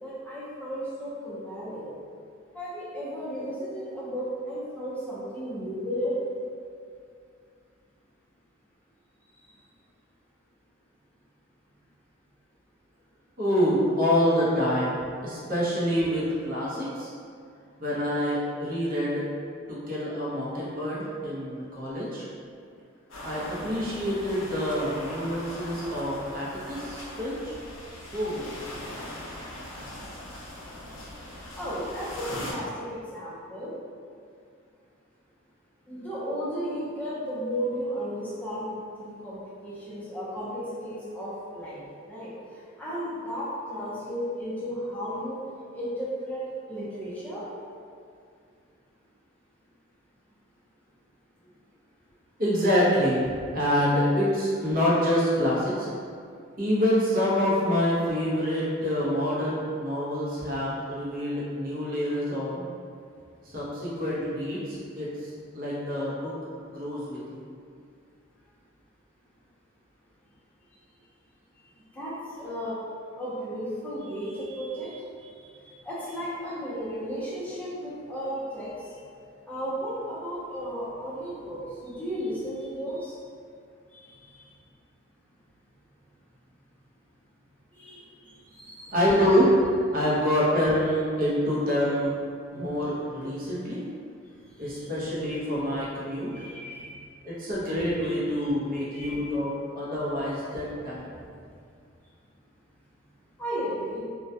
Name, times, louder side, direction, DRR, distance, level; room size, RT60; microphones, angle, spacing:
voice 1, 0.0-1.9 2.5-6.1 31.5-33.7 35.9-41.8 42.1-42.3 42.8-45.4 45.7-46.4 46.7-47.4 71.9-72.8 73.2-75.0 75.8-78.9 79.5-83.1 87.7-88.0 88.5-89.0 89.9-90.1 94.6-95.1 96.3-96.9 98.0-98.1 98.9-99.2 103.4-104.0, equal, 10° left, -9 dB, 0.5 m, -34 dB
voice 2, 13.4-15.0 15.2-17.1 17.8-19.2 19.7-22.3 23.2-27.5 28.1-28.5 52.4-55.9 56.6-62.7 63.4-66.3 66.7-67.4 88.9-89.5 89.9-92.1 92.5-93.8 94.6-96.3 97.2-101.1, equal, 45° right, -8 dB, 0.6 m, -26 dB
sound 1, 23.1-32.5, left 1 dB, 85° left, 0.5 m, -40 dB
2.2 x 2.1 x 2.6 m, 2.3 s
head